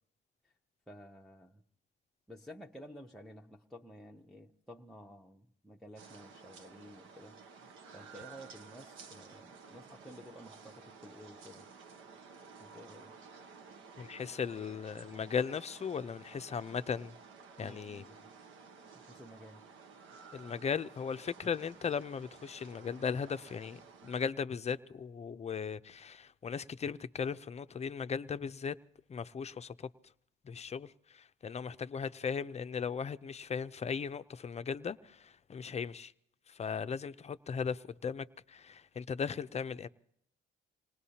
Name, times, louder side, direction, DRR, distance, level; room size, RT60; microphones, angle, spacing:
voice 1, 0.9-1.6 2.3-7.4 7.9-11.7 12.6-13.1 17.6-18.3 18.9-19.6, equal, ahead, 0.7 m, -52 dB
sound 1, 6.0-24.3, right 5 dB, 80° right, 1.1 m, -54 dB
voice 2, 14.0-17.2 17.6-18.0 20.3-28.8 29.1-29.9 30.4-36.1 36.5-39.9, left 6 dB, 35° left, 0.5 m, -37 dB
26.5 x 19.0 x 2.8 m
cardioid pair, 90°, 20 cm